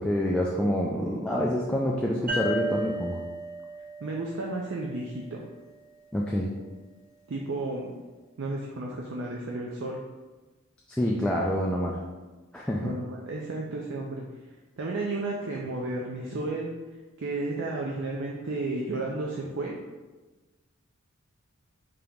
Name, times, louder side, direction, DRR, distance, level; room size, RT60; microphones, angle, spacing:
voice 1, 0.0-3.2 6.1-6.5 10.9-12.0 12.5-12.9, equal, 5° left, -3 dB, 0.3 m, -27 dB
sound 1, 2.3-5.7, right 1 dB, 40° right, 1.4 m, -35 dB
voice 2, 4.0-5.4 7.3-7.9 8.4-10.0 12.8-14.2 14.8-19.7, right 2 dB, 55° right, -1 dB, 0.5 m, -33 dB
5.1 x 2.9 x 3.5 m, 1.2 s
head